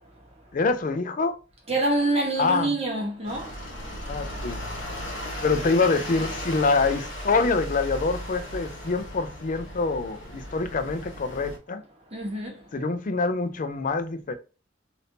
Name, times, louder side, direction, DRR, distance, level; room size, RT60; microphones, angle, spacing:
voice 1, 0.5-1.4 2.4-2.7 4.1-4.6 5.4-11.8 12.7-14.3, left 4 dB, 45° left, 0.5 m, -25 dB
voice 2, 1.7-3.5 12.1-12.6, right 2 dB, 30° right, 1.1 m, -26 dB
sound 1, 3.2-11.6, equal, 80° left, 1.2 m, -36 dB
3.4 x 2.6 x 2.7 m
head